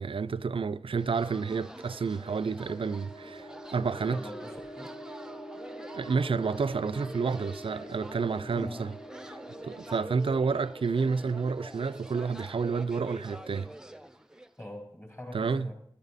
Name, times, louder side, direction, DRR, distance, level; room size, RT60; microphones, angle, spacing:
voice 1, 0.0-4.3 5.9-8.9 9.3-9.4 9.6-13.7 15.3-15.7, right 5 dB, 70° right, 0.4 m, -30 dB
sound 1, 1.0-14.6, right 1 dB, 5° right, 0.6 m, -46 dB
sound 2, 1.8-13.6, right 1 dB, 65° left, 1.6 m, -46 dB
voice 2, 4.1-4.9 8.5-8.8 14.6-15.7, left 1 dB, 25° left, 3.8 m, -42 dB
14.0 x 11.5 x 4.1 m
wide cardioid pair, 50°, 10 cm